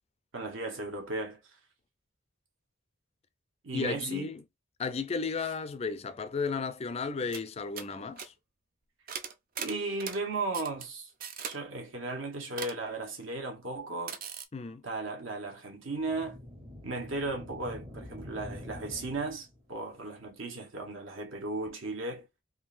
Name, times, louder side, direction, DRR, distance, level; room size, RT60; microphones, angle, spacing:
voice 1, 0.3-1.4 3.6-4.3 9.6-11.1 11.4-14.2 14.8-16.4 16.8-22.3, right 3 dB, 70° right, 1.2 m, -36 dB
voice 2, 3.7-4.4 4.8-8.3 14.5-14.8, left 4 dB, 30° left, 0.4 m, -34 dB
sound 1, 7.0-7.1 7.3-7.5 7.7-7.9 8.2-8.3 9.1-10.2 10.5-10.8 11.2-11.6 12.6-12.8 14.1-14.4, right 7 dB, 45° right, 0.5 m, -39 dB
sound 2, 16.0-19.7, left 1 dB, 25° right, 0.8 m, -46 dB
3.6 x 2.6 x 2.5 m
head